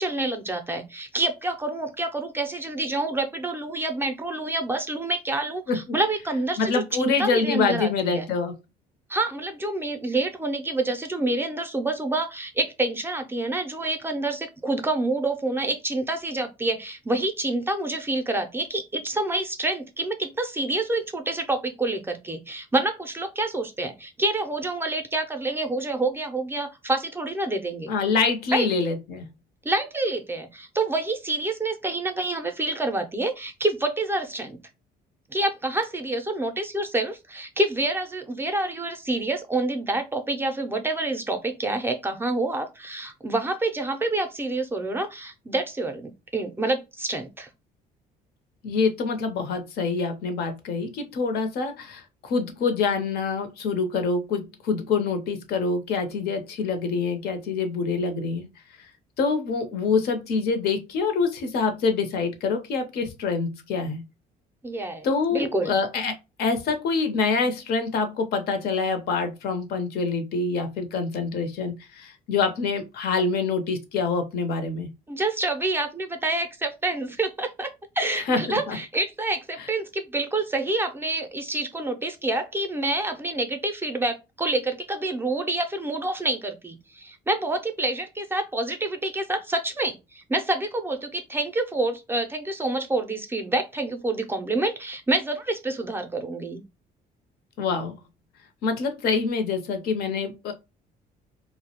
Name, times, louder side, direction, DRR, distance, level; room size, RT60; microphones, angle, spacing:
voice 1, 0.0-8.3 9.1-27.9 28.5-28.7 29.6-34.6 35.3-47.5 64.6-65.8 75.1-77.7 78.0-96.6, right 2 dB, 15° right, 0.4 m, -27 dB
voice 2, 6.6-8.5 27.9-29.2 48.6-58.5 58.8-58.9 59.2-64.0 65.0-74.9 78.3-78.4 78.7-78.8 79.6-79.7 97.6-98.0 98.6-100.5, left 4 dB, 70° left, 0.6 m, -26 dB
2.2 x 2.0 x 2.8 m
cardioid pair, 110°, 17 cm